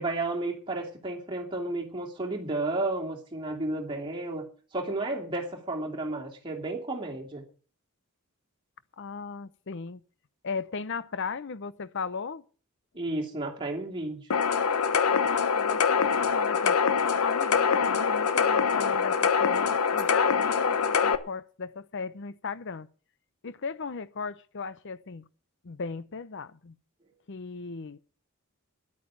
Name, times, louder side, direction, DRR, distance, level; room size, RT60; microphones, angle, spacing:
voice 1, 0.0-4.4 4.7-7.4 12.9-14.2, right 2 dB, 25° right, 2.7 m, -32 dB
voice 2, 9.0-10.0 10.4-12.4 15.2-16.8 17.2-22.9 23.4-25.2 25.6-26.7 27.3-28.0, left 5 dB, 55° left, 0.7 m, -36 dB
sound 1, 14.3-21.2, left 6 dB, 90° left, 0.9 m, -24 dB
11.0 x 9.0 x 8.4 m
head